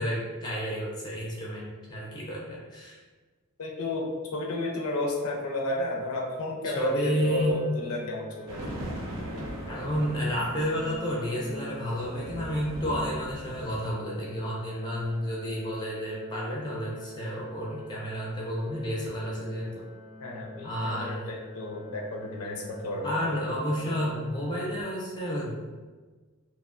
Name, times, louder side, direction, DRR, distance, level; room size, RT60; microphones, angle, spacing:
voice 1, 0.0-3.0 6.8-7.7 9.7-19.8 20.6-21.3 23.0-25.7, equal, 20° left, -4 dB, 0.4 m, -31 dB
voice 2, 3.6-8.9 20.2-23.4, left 2 dB, 75° left, -1 dB, 0.5 m, -32 dB
sound 1, 6.9-24.8, left 2 dB, 30° right, 0.6 m, -46 dB
sound 2, 8.5-13.9, right 1 dB, 80° right, 0.5 m, -39 dB
2.8 x 2.1 x 2.4 m, 1.3 s
head